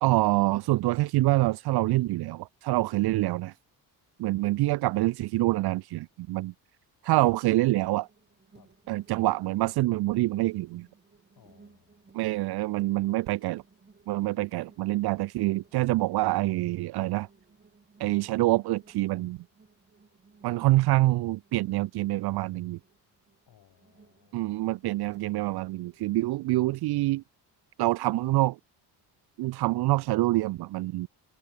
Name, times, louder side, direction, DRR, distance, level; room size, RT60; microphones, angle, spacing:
voice 1, 0.0-3.5 4.2-6.5 7.0-8.1 8.9-10.9 12.1-13.6 14.1-17.3 18.0-19.4 20.4-22.8 24.3-27.2 27.8-28.6 29.4-31.1, right 18 dB, 70° right, 0.6 m, -26 dB
sound 1, 7.2-26.4, right 4 dB, 25° right, 3.3 m, -59 dB
voice 2, 11.3-12.1 14.3-14.4 23.5-24.7, left 10 dB, 65° left, 6.3 m, -62 dB
cardioid pair, 105°, 40 cm